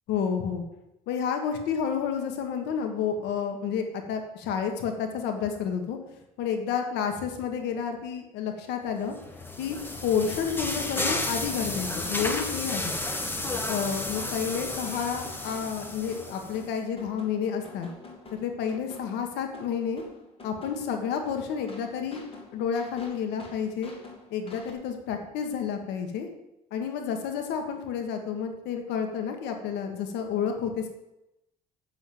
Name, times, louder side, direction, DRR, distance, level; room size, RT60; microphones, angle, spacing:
voice 1, 0.1-0.6 1.1-6.0 6.4-9.1 9.6-9.8 10.0-12.9 13.6-17.9 18.4-20.0 20.4-22.2 22.5-23.9 24.3-26.3 26.7-30.9, left 7 dB, 90° left, 4 dB, 1.5 m, -30 dB
sound 1, 9.1-16.6, left 2 dB, 10° left, 1.3 m, -32 dB
sound 2, 9.7-24.7, left 3 dB, 35° left, 2.1 m, -48 dB
7.2 x 6.5 x 7.7 m, 0.90 s
cardioid pair, 110°, 17 cm